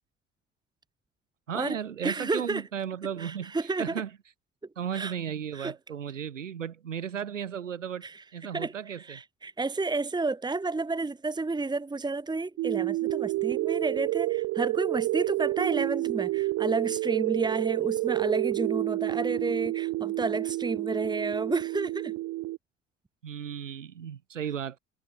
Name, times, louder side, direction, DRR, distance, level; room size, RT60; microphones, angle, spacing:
voice 1, 1.5-4.2 4.8-9.2 23.2-24.8, right 8 dB, 80° right, 4.3 m, -35 dB
voice 2, 2.0-2.6 3.2-4.0 4.9-5.1 5.5-5.7 8.0-8.1 8.5-8.7 9.1-22.1, right 3 dB, 10° right, 1.6 m, -31 dB
sound 1, 12.6-22.6, right 18 dB, 45° right, 0.8 m, -29 dB
figure-of-eight pair, 60°, 37 cm